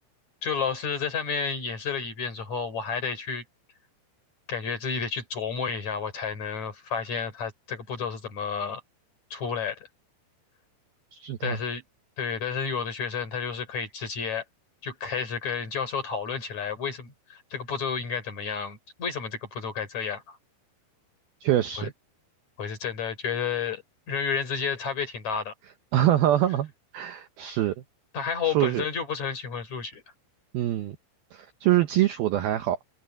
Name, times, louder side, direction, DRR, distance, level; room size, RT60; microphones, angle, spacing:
voice 1, 0.4-3.4 4.5-8.8 9.3-9.9 11.4-11.8 12.2-14.4 14.8-20.4 21.8-21.9 22.6-25.5 28.1-30.0, left 6 dB, 40° left, 4.7 m, -31 dB
voice 2, 11.1-11.6 21.4-21.9 25.9-27.7 28.4-28.8 30.5-31.0 31.3-32.8, right 13 dB, 80° right, 2.1 m, -24 dB
omnidirectional pair, 5.6 m